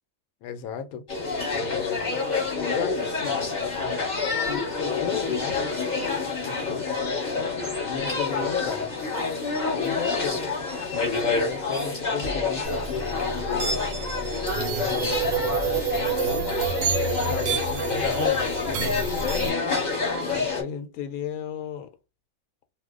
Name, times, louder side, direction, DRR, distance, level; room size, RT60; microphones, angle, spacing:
voice 1, 0.4-1.1 1.5-2.2 2.7-3.5 4.4-5.7 6.4-7.0 7.8-8.9 9.7-10.5 11.3-13.9 14.5-16.6 17.2-19.6 20.3-21.9, left 8 dB, 85° left, 1.0 m, -35 dB
sound 1, 1.1-20.6, left 4 dB, 35° left, 1.1 m, -27 dB
sound 2, 12.6-19.5, right 6 dB, 70° right, 1.0 m, -29 dB
2.5 x 2.1 x 3.6 m
omnidirectional pair, 1.5 m